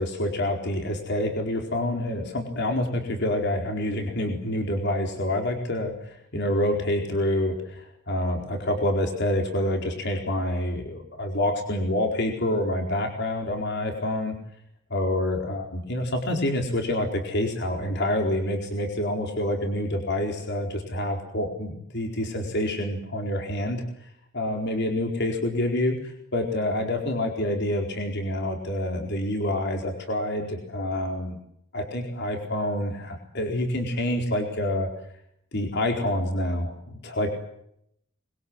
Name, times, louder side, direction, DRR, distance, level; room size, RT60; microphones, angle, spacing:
voice 1, 0.0-14.3 14.9-23.8 24.3-31.4 31.7-34.9 35.5-37.3, left 1 dB, 55° left, 3 dB, 4.3 m, -27 dB
26.0 x 22.5 x 8.0 m, 0.74 s
head